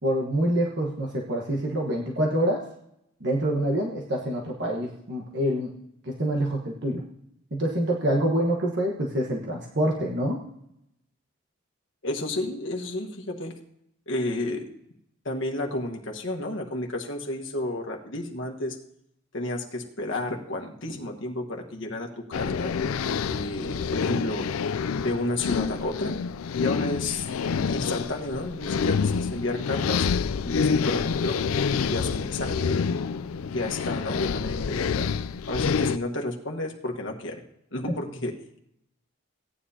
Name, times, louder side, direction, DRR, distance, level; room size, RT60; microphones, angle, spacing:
voice 1, 0.0-2.6 3.2-5.7 6.0-7.0 7.5-10.4, right 1 dB, 55° right, -2 dB, 1.3 m, -26 dB
voice 2, 12.0-13.5 14.1-14.6 15.2-18.8 19.3-22.7 23.2-24.5 25.0-26.2 26.6-27.3 27.6-30.1 30.4-32.9 33.5-35.1 35.5-37.4 37.7-38.3, left 2 dB, 60° left, 2 dB, 1.4 m, -31 dB
sound 1, 22.3-36.0, left 6 dB, 80° left, 0.4 m, -27 dB
16.5 x 9.9 x 2.8 m, 0.78 s
head